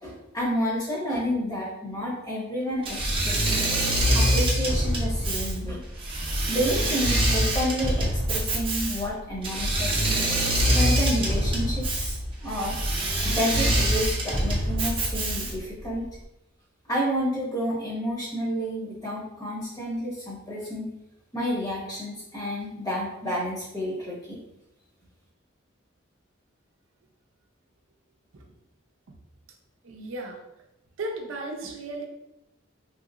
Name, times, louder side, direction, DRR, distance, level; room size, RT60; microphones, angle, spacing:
voice 1, 0.0-3.7 4.1-5.8 6.5-10.0 10.5-12.8 13.2-16.0 16.9-20.9 21.3-24.4, equal, 20° left, -6 dB, 0.9 m, -30 dB
Engine / Mechanisms, 2.8-15.7, right 1 dB, 25° right, 0.6 m, -25 dB
voice 2, 29.8-30.4 31.0-32.0, right 2 dB, 80° right, 1 dB, 0.5 m, -35 dB
3.0 x 2.9 x 2.4 m, 0.87 s
head